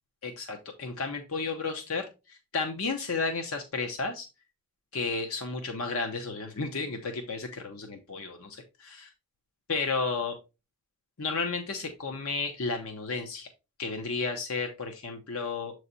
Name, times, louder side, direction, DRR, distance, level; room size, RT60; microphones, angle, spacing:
voice 1, 0.2-4.3 4.9-9.1 9.7-10.3 11.2-13.5 13.8-15.7, left 4 dB, 80° left, 4 dB, 0.9 m, -33 dB
7.7 x 3.2 x 4.0 m, 0.28 s
head